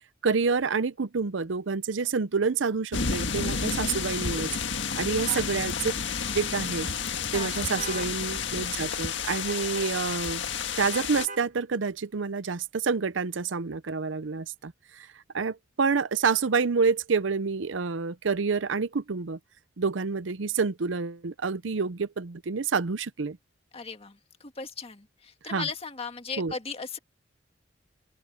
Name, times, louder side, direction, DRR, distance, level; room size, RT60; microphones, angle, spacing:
voice 1, 0.2-4.5 4.9-5.9 6.3-6.9 7.3-10.4 10.8-15.1 15.3-19.4 19.8-23.4 25.5-25.7 26.4-26.5, right 5 dB, 90° right, 0.7 m, -28 dB
sound 1, 2.9-11.3, left 6 dB, 75° left, 1.7 m, -31 dB
voice 2, 4.9-5.5 7.3-7.7 23.7-27.0, left 5 dB, 30° left, 1.8 m, -38 dB
sound 2, 7.8-8.1 9.5-9.9 10.9-11.5, right 3 dB, 45° right, 1.4 m, -40 dB
open air
head